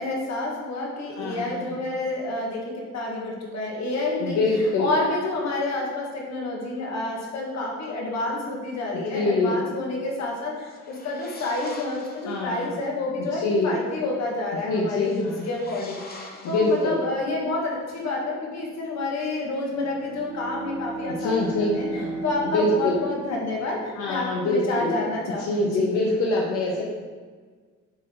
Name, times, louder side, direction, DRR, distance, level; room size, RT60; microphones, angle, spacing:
voice 1, 0.0-4.4 4.8-25.9, left 2 dB, 60° left, -3 dB, 1.6 m, -29 dB
voice 2, 1.2-1.7 4.2-4.9 8.9-9.6 12.3-12.7 13.4-13.7 14.7-15.5 16.4-17.0 21.2-23.0 24.0-25.0 25.3-26.8, left 2 dB, 90° left, -1 dB, 0.8 m, -25 dB
sound 1, 10.5-12.6 15.0-17.3, left 2 dB, 30° left, 1.0 m, -45 dB
Bowed string instrument, 19.7-24.1, right 2 dB, 45° right, 1.0 m, -35 dB
8.1 x 3.3 x 3.8 m, 1.5 s
cardioid pair, 90°, 30 cm